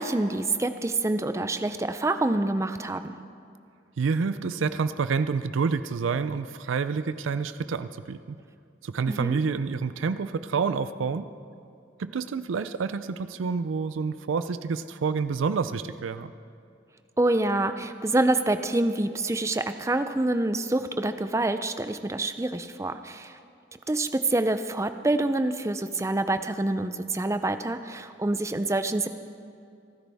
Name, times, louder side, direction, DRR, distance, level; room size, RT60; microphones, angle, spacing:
voice 1, 0.0-3.1 9.1-9.4 17.2-23.3 23.9-29.1, right 2 dB, 15° right, 10 dB, 0.4 m, -26 dB
voice 2, 4.0-8.4 8.8-11.3 12.0-16.3, right 5 dB, 85° right, 12 dB, 0.4 m, -28 dB
28.0 x 10.0 x 3.5 m, 2.5 s
head